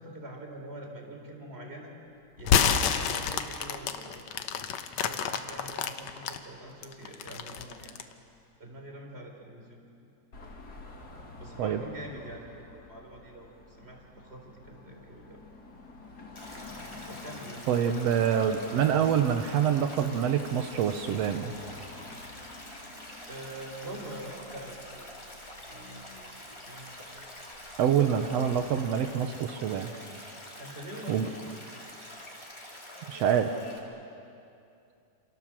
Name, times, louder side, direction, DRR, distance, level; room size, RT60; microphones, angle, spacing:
voice 1, 0.0-1.9 2.4-4.7 5.0-8.0 8.6-9.8 11.4-15.4 17.1-17.7 23.3-25.1 25.7-26.9 30.6-31.6, right 1 dB, 15° right, 2 dB, 3.8 m, -44 dB
sound 1, 2.4-6.4 6.8-8.1, left 8 dB, 65° left, 1.8 m, -28 dB
Car passing by / Traffic noise roadway noise / Engine, 10.3-29.0, left 3 dB, 30° left, 2.7 m, -49 dB
Stream, 16.3-33.8, left 1 dB, 10° left, 3.4 m, -46 dB
voice 2, 17.7-21.5 27.8-29.9 31.1-31.3 33.1-33.5, right 8 dB, 85° right, 7 dB, 1.4 m, -26 dB
28.0 x 28.0 x 7.5 m, 2.6 s
omnidirectional pair, 4.3 m